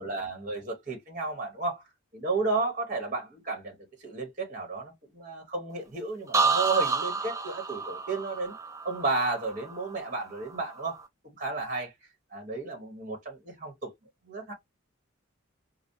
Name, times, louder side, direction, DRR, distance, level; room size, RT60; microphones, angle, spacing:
voice 1, 0.0-1.8 2.1-3.7 4.0-8.5 8.8-11.0 11.2-11.9 12.3-13.9 14.2-14.5, right 3 dB, 40° right, 1.4 m, -32 dB
sound 1, 6.3-10.1 10.5-11.0, right 4 dB, 15° right, 0.5 m, -30 dB
5.1 x 2.3 x 2.7 m
head